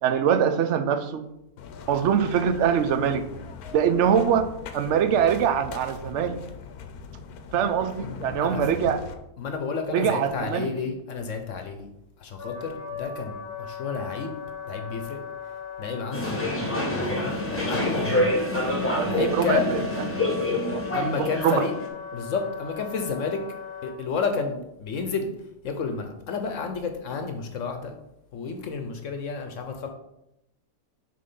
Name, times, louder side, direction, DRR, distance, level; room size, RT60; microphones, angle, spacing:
voice 1, 0.0-1.2 1.9-3.3 3.7-4.4 4.7-6.4 7.5-9.0 9.9-10.7 18.9-19.8 20.2-21.7, right 8 dB, 65° right, 9 dB, 0.8 m, -23 dB
sound 1, 1.6-9.1, left 6 dB, 85° left, 1.2 m, -41 dB
voice 2, 9.4-11.9 12.2-14.3 14.7-15.2 15.8-16.5 16.9-18.3 18.8-19.7 20.9-21.7 22.1-23.4 23.8-25.3 25.6-27.9 28.3-29.9, left 5 dB, 65° left, 5 dB, 1.0 m, -31 dB
Wind instrument woodwind instrument, 12.4-24.0, left 7 dB, 45° left, 1.0 m, -38 dB
sound 2, 16.1-21.9, left 1 dB, 10° left, 0.9 m, -27 dB
6.6 x 3.5 x 5.4 m, 0.85 s
omnidirectional pair, 1.6 m